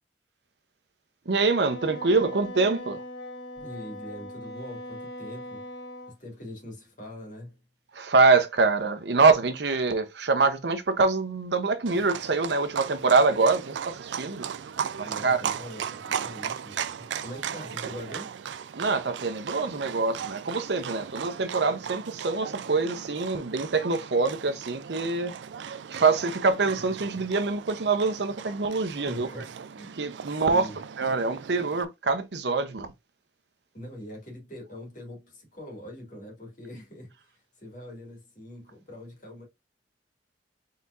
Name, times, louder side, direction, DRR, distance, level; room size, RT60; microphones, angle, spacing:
voice 1, 1.3-3.0 7.9-14.5 15.2-15.4 18.7-25.3 25.6-29.3 30.0-30.7 31.0-32.9, right 4 dB, 75° right, 0.8 m, -25 dB
Wind instrument woodwind instrument, 1.6-6.2, left 1 dB, 70° left, 0.9 m, -40 dB
voice 2, 3.5-5.7 6.2-7.6 15.0-18.3 29.0-30.0 30.3-30.8 33.7-39.4, equal, 45° left, 2.3 m, -43 dB
Livestock farm animals working animals, 11.9-31.9, right 8 dB, 90° right, 0.4 m, -37 dB
4.2 x 4.1 x 2.5 m
head